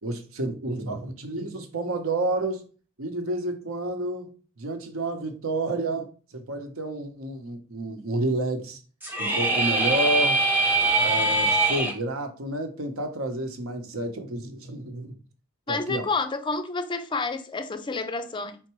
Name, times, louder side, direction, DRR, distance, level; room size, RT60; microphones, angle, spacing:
voice 1, 0.0-2.7 3.0-8.8 9.2-10.4 10.8-15.1 15.7-16.1, right 2 dB, 75° right, 0.9 m, -30 dB
sound 1, 9.0-11.9, right 2 dB, 10° right, 0.7 m, -22 dB
voice 2, 15.7-18.6, left 3 dB, 20° left, 0.4 m, -29 dB
4.5 x 3.9 x 3.0 m
head